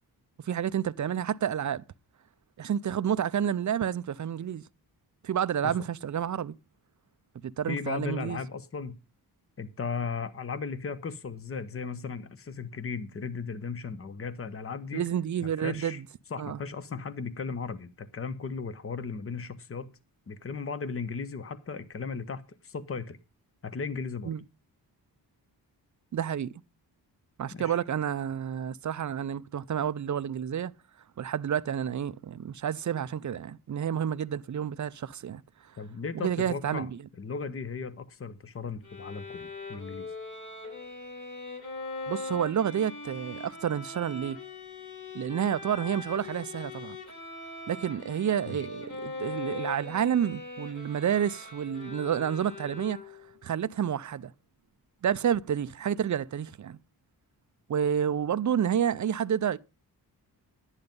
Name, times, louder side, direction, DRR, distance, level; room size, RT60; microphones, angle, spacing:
voice 1, 0.4-1.8 2.6-4.6 5.2-6.6 7.4-8.4 14.9-16.1 16.4-16.6 24.2-24.4 26.1-26.5 27.4-30.7 31.2-35.4 36.1-36.9 42.1-44.4 45.1-47.0 47.7-53.0 53.4-54.3 55.0-56.8 57.7-59.6, right 9 dB, 45° right, 0.6 m, -29 dB
voice 2, 7.7-8.9 9.6-15.0 15.6-16.0 16.3-19.9 20.3-23.2 23.6-24.3 27.5-27.8 35.8-36.9 37.2-40.1 48.4-48.6, left 5 dB, 35° left, 1.0 m, -36 dB
Bowed string instrument, 38.8-53.4, left 3 dB, 50° left, 6.8 m, -41 dB
10.5 x 9.8 x 5.3 m
wide cardioid pair, 100°, 39 cm